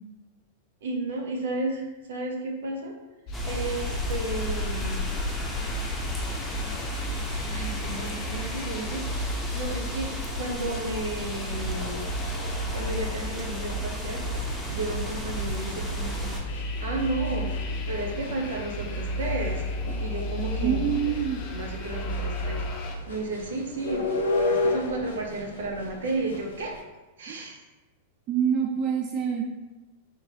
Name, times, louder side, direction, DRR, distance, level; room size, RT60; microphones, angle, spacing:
voice 1, 0.8-2.9 3.5-5.0 7.1-7.2 7.5-12.1 12.7-14.2 14.7-17.5 17.9-19.6 20.0-20.9 21.5-22.6 23.1-24.0 24.5-26.7 27.2-27.6, right 2 dB, 75° right, 1 dB, 0.8 m, -33 dB
sound 1, 3.3-22.9, equal, 45° left, 0.5 m, -33 dB
sound 2, 3.3-16.4, left 1 dB, 5° left, 0.8 m, -35 dB
sound 3, 12.7-26.8, left 2 dB, 85° left, 0.7 m, -35 dB
voice 2, 20.6-21.4 27.3-27.4 28.3-29.4, right 8 dB, 40° right, 1 dB, 0.4 m, -26 dB
3.6 x 2.9 x 2.8 m, 1.1 s
hypercardioid pair, 110°, 0 cm